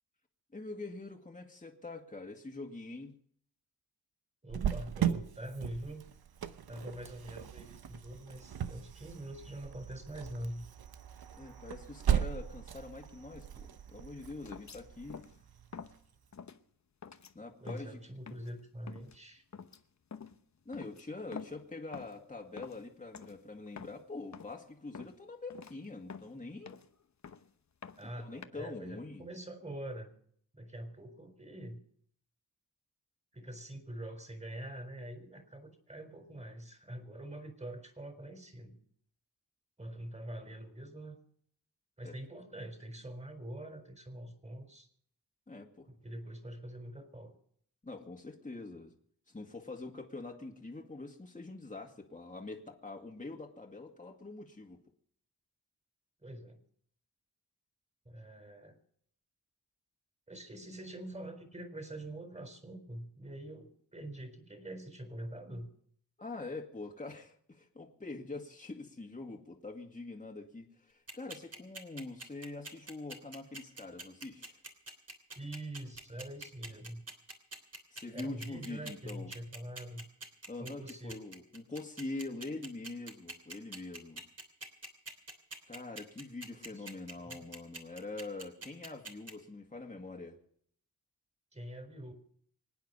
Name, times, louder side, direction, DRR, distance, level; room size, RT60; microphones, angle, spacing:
voice 1, 0.5-3.1 11.4-15.2 17.3-18.0 20.7-26.8 28.2-29.3 42.0-42.2 45.5-45.9 47.8-48.9 49.3-54.8 66.2-74.6 77.9-79.3 80.5-84.2 85.7-90.4, left 3 dB, 20° left, 0 dB, 2.1 m, -44 dB
voice 2, 4.4-6.0 6.7-10.7 17.6-19.4 28.0-30.1 30.5-31.8 33.3-38.8 39.8-41.2 42.0-44.9 45.9-47.3 56.2-56.6 58.1-58.8 60.3-65.7 75.3-77.0 78.1-80.0 80.6-81.1 86.5-87.4 91.5-92.1, right 1 dB, 20° right, 7 dB, 4.0 m, -45 dB
Cricket, 4.5-16.0, right 9 dB, 85° right, 1.0 m, -37 dB
sound 1, 14.4-14.8 15.1-15.4 15.7-16.0 16.3-16.6 17.0-17.3 17.7-17.9 18.3-18.5 18.9-19.1 19.5-19.8 20.1-20.4 20.7-21.7 21.9-22.2 22.6-22.9 23.1-23.4 23.7-24.0 24.3-24.6 24.9-25.2 25.5-25.7 26.1-26.9 27.2-27.5 27.8-28.4, left 6 dB, 50° left, 1.0 m, -48 dB
sound 2, 71.1-89.3, right 2 dB, 40° right, 3.2 m, -45 dB
25.5 x 9.3 x 5.6 m, 0.63 s
cardioid pair, 75°, 36 cm